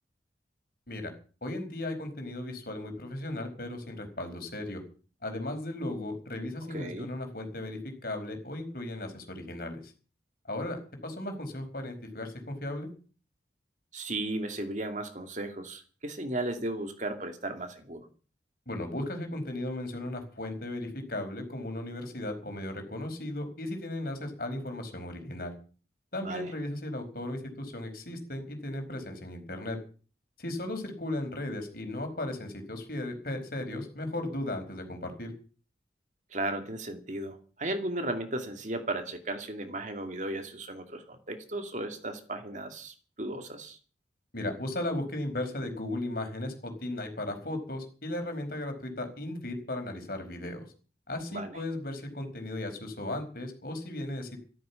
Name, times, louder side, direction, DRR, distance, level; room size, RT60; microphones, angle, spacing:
voice 1, 1.4-4.8 5.2-9.9 10.4-12.9 18.7-25.5 26.1-29.8 30.4-35.3 44.3-50.7 51.1-54.4, left 1 dB, 55° left, 5 dB, 4.8 m, -36 dB
voice 2, 6.7-7.1 13.9-18.1 26.2-26.5 36.3-43.8 51.3-51.6, right 2 dB, 45° right, 6 dB, 2.4 m, -35 dB
14.5 x 13.0 x 7.0 m, 0.39 s
head